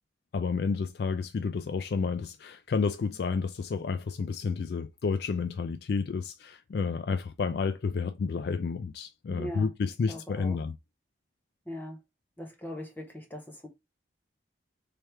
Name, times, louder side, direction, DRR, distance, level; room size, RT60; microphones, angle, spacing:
voice 1, 0.3-10.8, left 5 dB, 60° left, 0.3 m, -30 dB
voice 2, 9.3-9.7 10.1-10.6 11.7-12.0 12.4-13.7, equal, 10° left, 0.8 m, -40 dB
3.4 x 3.2 x 4.4 m
head